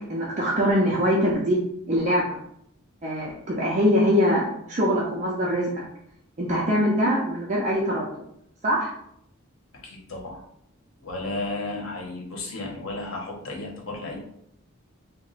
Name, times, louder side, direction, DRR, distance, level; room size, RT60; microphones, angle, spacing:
voice 1, 0.0-2.4 3.0-5.9 6.4-8.1 8.6-8.9, equal, 35° right, -4 dB, 0.5 m, -23 dB
voice 2, 9.8-10.4 11.0-14.2, left 2 dB, 80° left, -1 dB, 0.9 m, -33 dB
2.9 x 2.1 x 3.9 m, 0.74 s
head